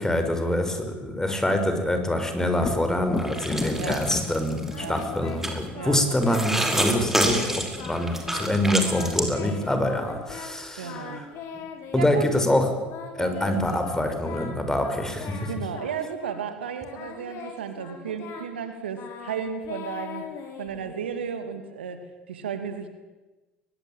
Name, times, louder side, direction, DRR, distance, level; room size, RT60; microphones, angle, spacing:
voice 1, 0.0-11.2 11.5-11.6 11.9-12.7 13.2-15.5, left 1 dB, 10° left, 6 dB, 5.9 m, -25 dB
Thunder, 2.5-10.2 13.9-14.0 14.4-15.3, left 3 dB, 30° left, 3.7 m, -36 dB
sound 1, 3.2-5.0 5.4-5.6 6.1-9.3, right 1 dB, 5° right, 5.3 m, -27 dB
voice 2, 3.7-4.1 4.8-5.0 5.7-6.0 10.8-11.3 11.9-12.3 13.2-13.8 15.5-20.3 20.6-22.9, right 7 dB, 85° right, 8 dB, 2.5 m, -34 dB
Singing, 4.7-6.5 6.8-7.5 7.8-8.5 8.8-10.5 10.8-12.3 12.9-16.5 16.8-21.2, left 6 dB, 55° left, 5.9 m, -41 dB
22.5 x 21.5 x 9.1 m, 1.2 s
hypercardioid pair, 70°, 6 cm